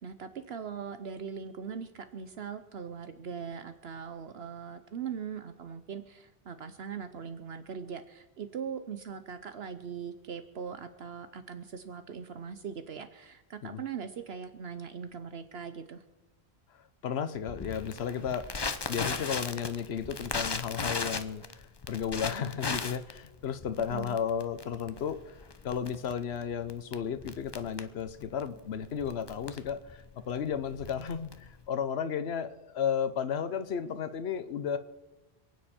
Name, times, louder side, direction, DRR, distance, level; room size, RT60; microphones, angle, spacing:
voice 1, 0.0-16.0 23.9-24.2, right 7 dB, 70° right, 10 dB, 1.0 m, -40 dB
voice 2, 16.7-18.5 18.9-25.4 25.6-34.8, left 7 dB, 75° left, 11 dB, 1.1 m, -34 dB
Crackle, 17.5-31.7, left 4 dB, 30° left, 0.6 m, -38 dB
27.0 x 9.5 x 4.4 m, 1.1 s
omnidirectional pair, 1.1 m